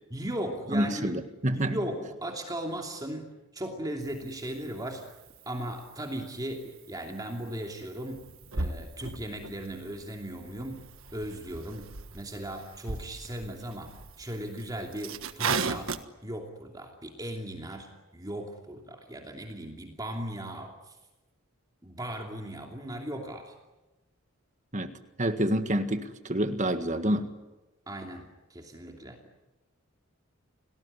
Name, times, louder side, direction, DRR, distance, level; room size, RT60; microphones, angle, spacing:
voice 1, 0.1-1.1 1.5-5.0 5.5-8.2 8.5-10.8 11.1-11.9 12.1-15.9 16.2-20.7 21.8-23.5 27.9-29.2, right 1 dB, 15° right, 2 dB, 2.8 m, -37 dB
voice 2, 0.7-1.7 24.7-24.9 25.2-27.3, right 1 dB, 35° right, 8 dB, 1.7 m, -28 dB
sound 1, 4.0-16.0, right 4 dB, 65° right, 1.4 m, -38 dB
30.0 x 19.0 x 9.8 m, 1.1 s
head